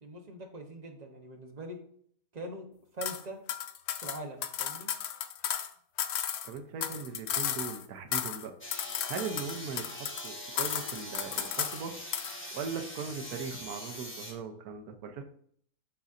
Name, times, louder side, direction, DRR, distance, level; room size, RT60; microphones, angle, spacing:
voice 1, 0.0-1.8 2.3-2.7 2.9-3.4 4.0-4.9, right 1 dB, 35° right, 3 dB, 0.8 m, -42 dB
sound 1, 3.0-3.2 3.5-5.7 6.0-7.8 8.1-8.5 8.7-10.3 10.6-11.8 12.1-12.4, left 9 dB, 90° left, 0.5 m, -34 dB
voice 2, 6.4-8.5 9.1-11.9 12.5-15.2, right 5 dB, 70° right, 6 dB, 1.2 m, -39 dB
sound 2, 8.6-14.3, equal, 10° left, 0.8 m, -43 dB
11.5 x 4.0 x 2.5 m, 0.63 s
omnidirectional pair, 1.7 m